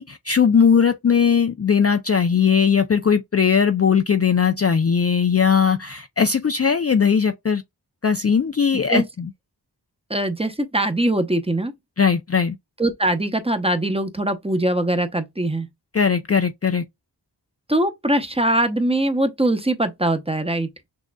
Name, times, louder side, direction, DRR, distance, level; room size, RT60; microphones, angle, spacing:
voice 1, 0.0-7.6 8.0-9.3 12.0-12.6 15.9-16.8, left 6 dB, 35° left, 0.4 m, -19 dB
voice 2, 10.1-11.7 12.8-15.7 17.7-20.7, right 1 dB, 15° right, 0.7 m, -22 dB
6.2 x 2.4 x 2.2 m
wide cardioid pair, 65°, 42 cm